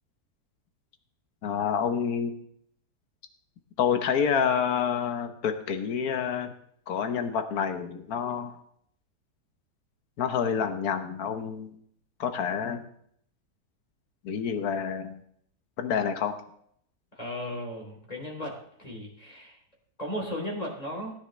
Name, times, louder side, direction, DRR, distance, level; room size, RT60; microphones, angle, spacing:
voice 1, 1.4-2.4 3.8-6.5 6.9-8.6 10.2-11.7 12.2-12.8 14.2-15.2 15.8-16.4, left 7 dB, 65° left, 8 dB, 1.6 m, -28 dB
voice 2, 17.1-19.6 20.0-21.1, equal, 20° left, -1 dB, 3.8 m, -36 dB
19.0 x 10.0 x 3.3 m, 0.66 s
omnidirectional pair, 1.8 m